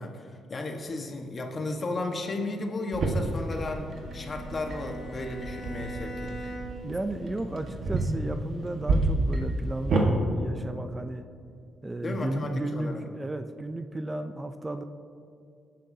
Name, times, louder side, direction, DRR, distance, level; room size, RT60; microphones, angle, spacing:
voice 1, 0.0-6.3 12.0-13.0, left 2 dB, 40° left, 3 dB, 1.4 m, -34 dB
sound 1, 2.9-10.1, right 2 dB, 55° right, 1.6 m, -30 dB
Bowed string instrument, 3.9-7.0, right 1 dB, 65° left, 2.2 m, -41 dB
voice 2, 6.8-11.2 11.8-14.8, right 2 dB, 20° right, 8 dB, 0.5 m, -34 dB
18.0 x 9.2 x 2.8 m, 2.4 s
cardioid pair, 75°, 0 cm